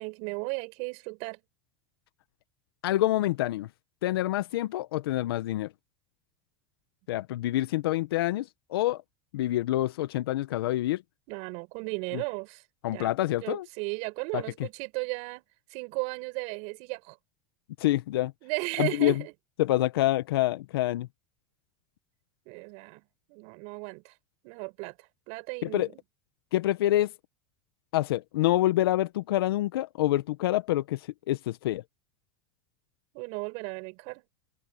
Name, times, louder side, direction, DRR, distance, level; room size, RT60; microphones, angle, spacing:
voice 1, 0.0-1.4 11.3-12.6 12.9-15.4 15.7-17.2 18.4-19.3 22.5-23.0 23.3-24.1 24.4-26.0 33.1-34.2, right 31 dB, 65° right, 5.9 m, -35 dB
voice 2, 2.8-3.7 4.0-5.7 7.1-9.0 9.3-11.0 12.8-13.7 14.3-14.4 17.8-18.3 18.8-19.2 19.6-21.1 25.6-25.9 26.5-27.1 27.9-31.8, left 15 dB, 80° left, 1.2 m, -27 dB
hypercardioid pair, 90°, 12 cm